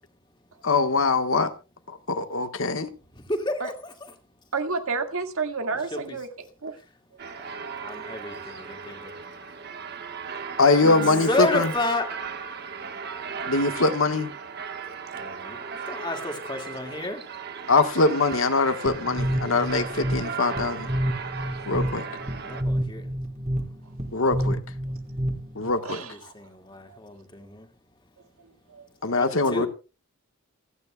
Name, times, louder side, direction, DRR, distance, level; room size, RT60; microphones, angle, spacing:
voice 1, 0.6-1.5 2.1-2.9 10.6-11.3 11.5-11.7 13.5-14.3 17.7-20.9 21.7-22.1 24.1-24.6 25.6-26.0 29.0-29.7, left 3 dB, 70° left, 1.4 m, -22 dB
voice 2, 3.1-4.1 5.7-6.3 7.4-7.5 7.8-9.1 10.9-12.2 15.1-17.2 22.1-22.2 22.4-23.1 25.7-27.7 29.1-29.7, left 2 dB, 20° left, 2.1 m, -31 dB
voice 3, 4.5-6.3 6.6-6.7 10.8-11.2 25.9-26.1, right 4 dB, 80° right, 2.0 m, -30 dB
sound 1, 7.2-22.6, right 5 dB, 50° right, 1.3 m, -36 dB
sound 2, 18.9-25.7, equal, 30° right, 2.2 m, -29 dB
27.5 x 9.7 x 2.3 m
head